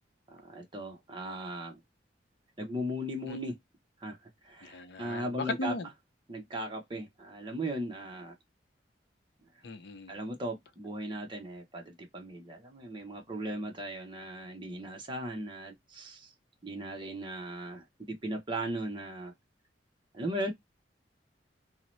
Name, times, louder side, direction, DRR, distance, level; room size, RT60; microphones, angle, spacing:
voice 1, 0.3-1.8 2.6-3.5 4.0-4.2 4.4-5.7 6.3-8.3 10.1-16.3 16.6-19.3 20.1-20.5, right 1 dB, 30° right, 0.7 m, -37 dB
voice 2, 4.6-5.9 9.6-10.1, left 2 dB, 65° left, 0.5 m, -37 dB
2.7 x 2.0 x 3.0 m
head